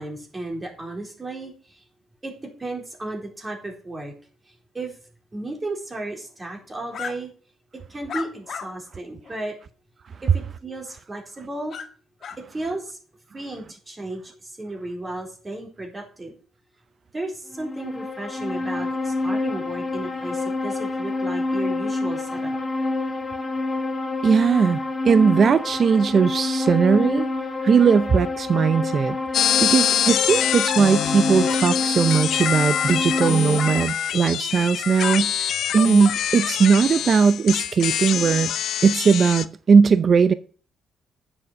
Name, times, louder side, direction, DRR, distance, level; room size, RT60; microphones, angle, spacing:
voice 1, 0.0-1.8 2.2-2.3 2.6-4.1 4.5-5.0 5.3-7.3 7.9-9.5 10.2-11.7 12.5-13.0 13.3-16.3 17.1-22.6, right 2 dB, 25° right, 4.1 m, -34 dB
sound 1, 6.9-7.1 8.1-8.7 9.2-9.3 11.7-11.9 12.2-12.4, left 7 dB, 55° left, 1.4 m, -33 dB
sound 2, 17.5-33.8, left 3 dB, 30° left, 2.0 m, -27 dB
voice 2, 24.2-27.3 27.6-29.2 29.6-38.5 38.8-40.3, right 6 dB, 45° right, 0.5 m, -19 dB
sound 3, 29.3-39.5, left 10 dB, 75° left, 0.6 m, -25 dB
9.6 x 7.2 x 6.6 m
cardioid pair, 90°, 0 cm